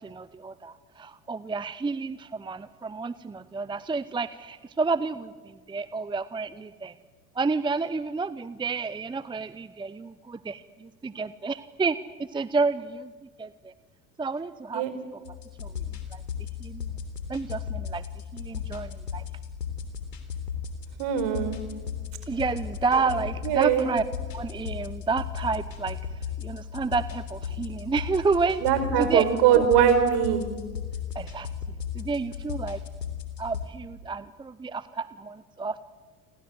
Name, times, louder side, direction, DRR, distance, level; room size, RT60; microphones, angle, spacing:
voice 1, 0.0-6.9 7.3-12.0 12.3-13.1 13.4-13.7 14.2-14.8 15.1-15.2 15.6-15.7 16.1-16.2 16.6-17.0 17.3-18.0 18.3-19.2 22.3-24.0 24.3-26.0 26.4-28.6 29.0-29.2 29.5-29.6 31.1-31.5 31.9-32.8 33.4-35.8, right 4 dB, 10° right, 16 dB, 0.8 m, -30 dB
sound 1, 15.2-33.7, left 7 dB, 85° left, 3.5 m, -36 dB
voice 2, 21.0-21.6 23.4-23.8 28.6-30.4, right 9 dB, 55° right, 10 dB, 5.0 m, -21 dB
29.5 x 25.0 x 8.0 m, 1.4 s
hypercardioid pair, 75°, 48 cm